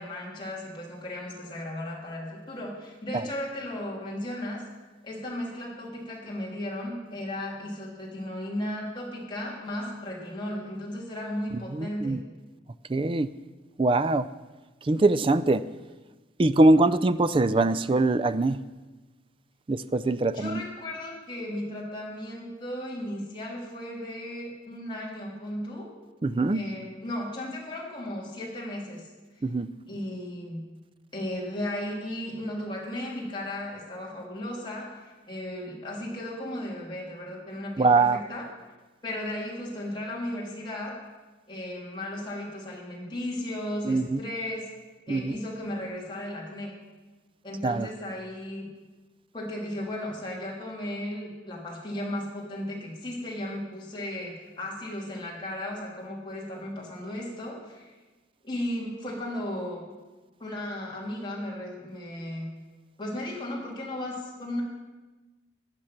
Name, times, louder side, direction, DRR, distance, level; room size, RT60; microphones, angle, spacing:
voice 1, 0.0-4.6 5.0-12.2 20.3-25.9 26.5-29.0 29.9-30.6 31.1-38.5 39.0-41.0 41.5-44.7 45.1-46.7 47.4-48.7 49.3-57.9 58.4-59.8 60.4-62.5 63.0-64.6, left 1 dB, 25° left, -4 dB, 3.1 m, -35 dB
voice 2, 11.7-12.2 12.9-13.3 13.8-14.3 14.8-15.6 16.4-18.6 19.7-20.6 26.2-26.6 29.4-29.7 37.8-38.2 43.9-44.2 45.1-45.3 47.6-47.9, right 2 dB, 25° right, 14 dB, 0.4 m, -22 dB
15.0 x 9.6 x 5.9 m, 1.2 s
head